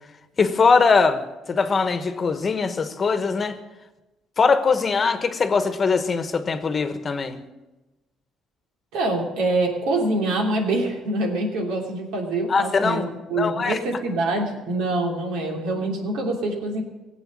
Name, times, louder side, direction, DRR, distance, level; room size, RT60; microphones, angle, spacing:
voice 1, 0.4-1.2 1.5-3.6 4.4-7.4 12.5-13.1 13.4-13.8, left 4 dB, 30° left, 10 dB, 1.1 m, -21 dB
voice 2, 8.9-16.8, right 2 dB, 85° right, 1 dB, 2.9 m, -25 dB
18.0 x 8.0 x 7.5 m, 1.1 s
cardioid pair, 115°, 0 cm